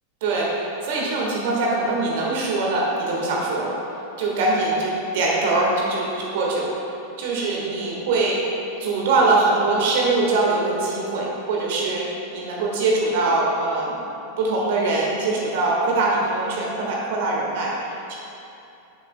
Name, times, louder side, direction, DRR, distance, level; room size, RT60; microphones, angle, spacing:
voice 1, 0.8-3.7 4.2-6.7 7.2-8.4 8.8-12.1 12.3-14.0 14.4-18.1, right 3 dB, 50° right, -3 dB, 1.6 m, -22 dB
10.0 x 7.3 x 2.2 m, 2.7 s
figure-of-eight pair, 90°, 0 cm